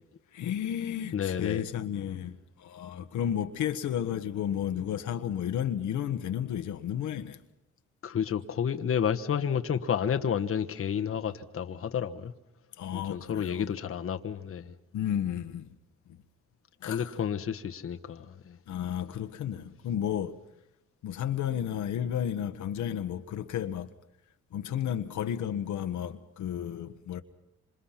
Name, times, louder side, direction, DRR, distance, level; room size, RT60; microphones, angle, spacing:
voice 1, 0.3-7.4 12.8-13.7 14.9-15.7 16.1-16.2 16.8-17.2 18.7-20.4 21.0-23.9 24.5-27.2, left 9 dB, 75° left, 1.4 m, -32 dB
voice 2, 1.1-1.6 8.0-12.3 12.9-14.6 16.9-18.6, left 8 dB, 45° left, 1.3 m, -30 dB
27.0 x 26.5 x 5.8 m
cardioid pair, 90°, 30 cm